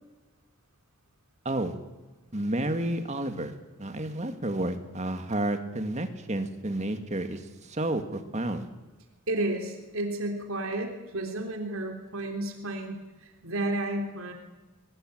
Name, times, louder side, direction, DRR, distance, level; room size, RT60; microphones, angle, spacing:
voice 1, 2.3-3.5 3.8-8.7, right 1 dB, 30° right, 8 dB, 2.0 m, -31 dB
voice 2, 9.3-14.3, right 1 dB, 70° right, 3 dB, 3.3 m, -32 dB
22.5 x 21.0 x 9.2 m, 1.2 s
head